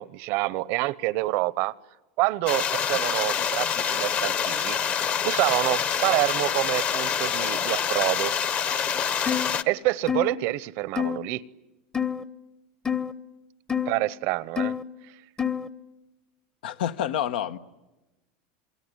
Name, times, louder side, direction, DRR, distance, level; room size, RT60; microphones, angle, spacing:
voice 1, 0.0-1.7 2.2-4.8 5.2-8.3 9.7-11.4 13.9-14.7, right 19 dB, 55° right, 0.9 m, -27 dB
sound 1, 2.5-9.6, left 8 dB, 30° left, 1.0 m, -26 dB
sound 2, 9.3-9.5 10.1-10.3 11.0-11.2 11.9-12.2 12.9-13.1 13.7-13.9 14.6-14.8 15.4-15.7, left 8 dB, 15° left, 0.9 m, -27 dB
voice 2, 16.6-17.6, left 10 dB, 85° left, 1.3 m, -28 dB
27.5 x 22.0 x 9.8 m
supercardioid pair, 135°, 5 cm